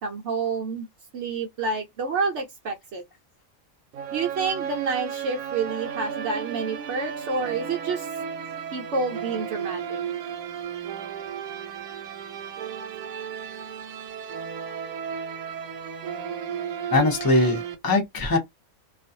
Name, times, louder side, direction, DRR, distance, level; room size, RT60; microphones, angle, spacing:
voice 1, 0.0-0.9 1.1-3.0 4.1-8.1 8.7-10.0, right 4 dB, 65° right, 0.9 m, -28 dB
sound 1, 3.9-17.7, right 7 dB, 90° right, 1.0 m, -34 dB
voice 2, 16.9-18.4, left 2 dB, 20° left, 0.7 m, -21 dB
2.4 x 2.3 x 2.6 m
omnidirectional pair, 1.4 m